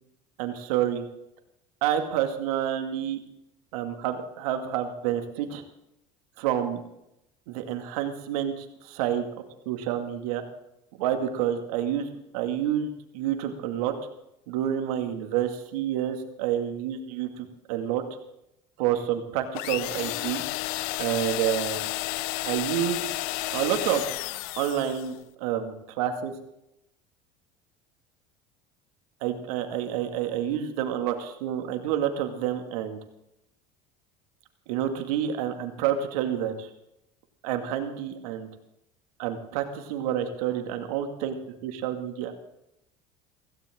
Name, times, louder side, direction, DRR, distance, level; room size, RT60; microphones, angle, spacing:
voice 1, 0.4-1.1 1.8-3.2 3.7-5.6 6.4-6.8 7.5-9.3 9.7-10.4 11.0-12.1 12.3-12.9 13.1-13.9 14.5-17.3 17.7-18.0 18.8-20.4 21.0-21.9 22.4-23.1 23.5-24.0 24.6-26.3 29.2-33.0 34.7-36.7 37.4-38.5 39.2-41.4 41.6-42.3, right 10 dB, 80° right, 6 dB, 2.2 m, -28 dB
sound 1, 19.5-25.2, left 19 dB, 75° left, 0.6 m, -32 dB
16.5 x 16.5 x 3.8 m, 0.84 s
supercardioid pair, 85°, 19 cm